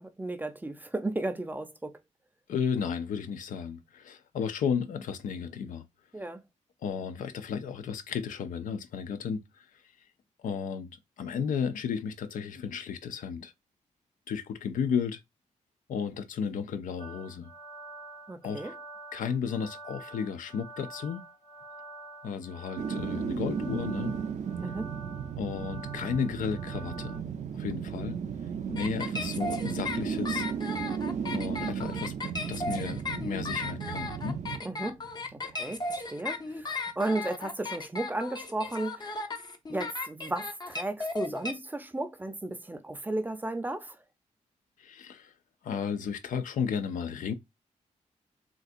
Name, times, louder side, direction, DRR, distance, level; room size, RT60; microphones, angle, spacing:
voice 1, 0.0-2.0 6.1-6.4 18.3-18.7 24.6-24.9 34.6-35.0 35.3-39.2 39.7-44.0, right 2 dB, 15° right, 0.5 m, -34 dB
voice 2, 2.5-5.8 6.8-9.7 10.4-10.9 11.2-13.5 14.3-15.2 15.9-17.5 18.4-18.7 19.1-21.3 22.2-24.1 25.4-27.2 27.5-28.2 28.7-30.5 31.3-32.1 32.5-34.4 44.8-45.3 45.6-47.3, left 7 dB, 85° left, 0.5 m, -33 dB
sound 1, 17.0-27.2, right 2 dB, 55° left, 2.0 m, -47 dB
sound 2, 22.8-35.8 36.2-36.3, right 7 dB, 65° right, 0.4 m, -35 dB
sound 3, 28.8-41.5, left 3 dB, 30° left, 0.6 m, -36 dB
3.8 x 2.3 x 2.5 m
cardioid pair, 70°, 13 cm